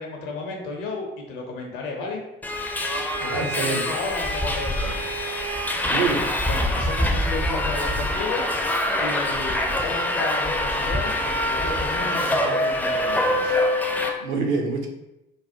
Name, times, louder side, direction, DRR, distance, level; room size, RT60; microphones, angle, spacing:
voice 1, 0.0-2.2 3.2-5.1 6.5-13.6, left 3 dB, 70° left, 1 dB, 0.7 m, -33 dB
Subway metro underground, 2.4-14.1, left 1 dB, 5° left, 0.4 m, -24 dB
voice 2, 3.3-3.8 5.9-6.3 14.2-14.9, right 4 dB, 65° right, 2 dB, 0.6 m, -25 dB
3.2 x 2.1 x 2.6 m, 0.93 s
figure-of-eight pair, 50°, 29 cm